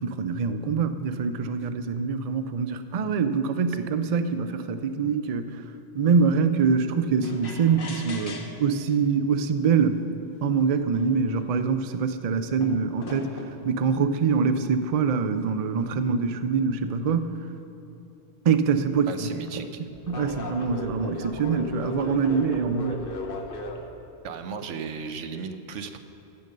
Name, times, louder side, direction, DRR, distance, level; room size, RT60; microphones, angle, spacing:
voice 1, 0.0-5.6 5.9-10.0 10.4-17.3 18.4-19.6 20.1-23.0, right 5 dB, 50° right, 10 dB, 0.4 m, -24 dB
sound 1, 7.2-8.8 9.8-9.9 10.6-10.7 10.9-11.8 12.6-13.7 14.6-16.1 18.7-18.9 19.9-23.9, left 2 dB, 50° left, 1.2 m, -38 dB
voice 2, 19.1-19.9 24.2-26.0, right 6 dB, 90° right, 8 dB, 1.1 m, -35 dB
15.0 x 5.3 x 6.6 m, 3.0 s
omnidirectional pair, 1.2 m